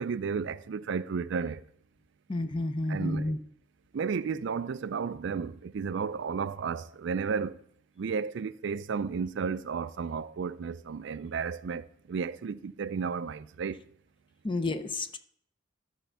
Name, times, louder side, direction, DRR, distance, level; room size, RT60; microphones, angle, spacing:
voice 1, 0.0-1.6 2.9-3.3 3.9-7.6 8.0-13.8, right 5 dB, 65° right, 0.4 m, -33 dB
voice 2, 2.3-3.4 14.4-15.2, left 2 dB, 25° left, 0.6 m, -30 dB
12.5 x 4.5 x 6.8 m
head